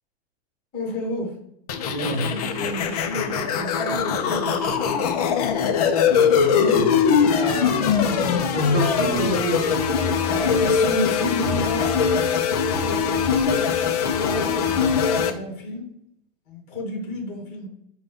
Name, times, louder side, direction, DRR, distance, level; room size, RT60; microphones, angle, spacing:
voice 1, 0.7-1.3 2.0-5.4 10.2-15.9 16.5-17.7, left 1 dB, 20° left, -1 dB, 1.1 m, -32 dB
sound 1, 1.7-15.3, left 6 dB, 35° left, 0.4 m, -21 dB
voice 2, 1.9-2.3 6.3-6.9 7.3-8.0 8.5-10.0, right 3 dB, 55° right, 5 dB, 1.0 m, -28 dB
5.1 x 2.2 x 3.5 m, 0.77 s
supercardioid pair, 165°, 33 cm